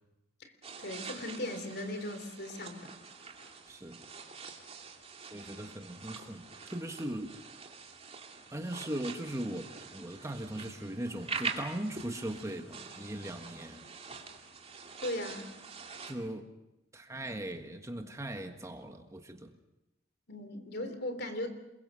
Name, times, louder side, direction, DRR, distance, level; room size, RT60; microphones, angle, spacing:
sound 1, 0.6-16.2, right 5 dB, 30° right, 2.6 m, -45 dB
voice 1, 0.8-2.9 15.0-15.5 20.3-21.5, left 1 dB, 55° left, 8 dB, 3.4 m, -38 dB
voice 2, 3.7-4.0 5.3-7.4 8.5-13.9 16.0-16.5 16.9-19.5, right 1 dB, 15° right, 5 dB, 1.5 m, -39 dB
28.0 x 22.0 x 6.4 m, 0.94 s
head